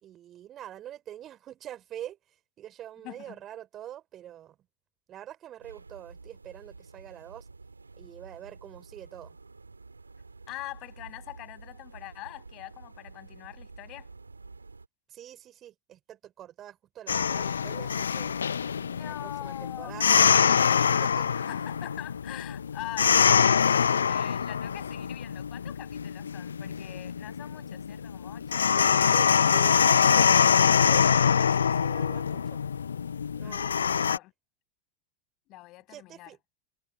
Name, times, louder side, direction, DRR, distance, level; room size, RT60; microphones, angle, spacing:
voice 1, 0.0-4.6 5.1-7.5 8.0-9.4 15.1-18.5 19.0-20.6 21.0-21.3 28.6-31.3 31.6-32.6 33.4-34.1 35.9-36.4, right 11 dB, 30° right, 3.5 m, -45 dB
voice 2, 3.0-3.4 10.5-14.1 18.7-19.9 21.4-28.8 33.4-33.8 34.0-34.3 35.5-36.4, left 19 dB, 40° left, 7.9 m, -43 dB
sound 1, 5.6-14.9, right 3 dB, 80° right, 3.0 m, -49 dB
sound 2, 17.1-34.2, left 7 dB, 70° left, 0.7 m, -24 dB
figure-of-eight pair, 90°, 0 cm